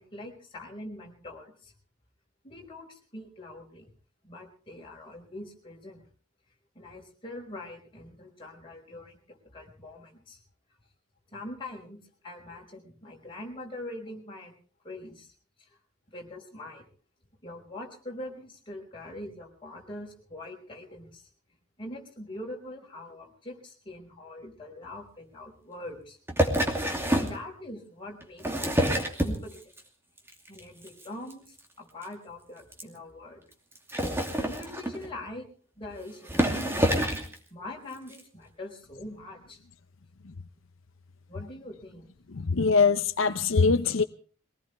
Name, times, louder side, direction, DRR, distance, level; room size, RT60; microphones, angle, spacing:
voice 1, 0.0-1.7 2.4-3.9 4.2-6.0 6.8-10.4 11.3-14.5 14.8-15.3 15.6-15.7 16.1-16.8 17.4-21.3 21.8-26.2 27.2-29.6 30.5-33.4 34.4-35.5 35.8-37.0 37.5-39.6 41.3-42.1, left 1 dB, 25° left, 5.3 m, -43 dB
sound 1, 26.3-27.4 28.2-29.8 30.2-30.6 30.9-31.0 31.3-31.4 31.6-31.7 32.0-32.1 32.7-32.8 33.8-35.1 35.8-35.9 36.3-37.3 38.1-38.2, equal, 10° right, 2.6 m, -27 dB
voice 2, 42.3-44.0, left 4 dB, 75° left, 0.7 m, -23 dB
23.0 x 19.0 x 3.4 m
head